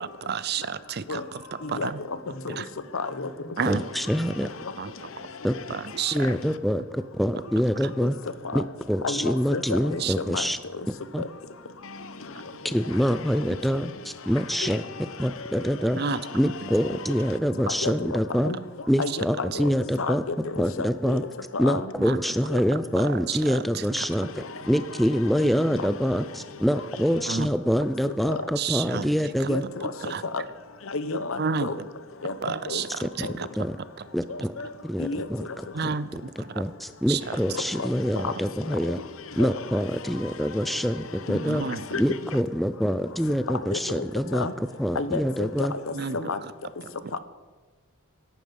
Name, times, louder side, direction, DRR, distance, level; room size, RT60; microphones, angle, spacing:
voice 1, 0.0-2.0 2.5-2.7 3.6-3.8 4.8-4.9 5.7-6.4 10.0-10.1 15.9-16.2 19.1-19.2 19.5-19.6 22.0-22.2 23.0-24.3 25.7-25.8 27.3-27.5 28.6-29.1 29.4-29.5 30.0-30.2 31.1-31.9 32.4-33.5 34.0-34.1 35.7-36.1 36.4-36.6 37.1-37.4 41.5-41.8 45.9-46.3 47.0-47.1, right 6 dB, 50° right, 16 dB, 0.5 m, -31 dB
voice 2, 2.9-3.3 4.6-4.7 6.2-6.3 8.0-8.1 8.4-8.6 9.0-10.0 10.3-10.5 14.6-14.8 16.8-17.0 17.7-18.2 18.4-18.6 19.0-19.7 20.0-21.2 21.5-21.9 22.5-22.6 25.8-25.9 29.5-29.9 30.3-30.4 30.9-31.8 32.2-32.8 33.2-33.3 34.3-34.7 35.0-35.3 37.5-37.9 38.2-38.3 38.8-38.9 39.4-39.6 41.3-41.4 41.9-42.0 43.5-44.0 44.3-44.5 44.9-46.4 47.1-47.2, left 4 dB, 75° left, 12 dB, 0.9 m, -31 dB
voice 3, 3.7-4.5 5.4-5.5 6.1-8.2 8.5-10.6 11.1-11.2 12.6-14.8 15.2-16.0 16.3-18.5 18.9-20.2 20.6-21.2 21.6-29.6 33.0-33.8 34.1-34.5 34.8-35.9 36.4-39.0 39.4-41.6 41.9-45.7, equal, ahead, 11 dB, 0.4 m, -25 dB
17.0 x 11.5 x 5.3 m, 1.3 s
head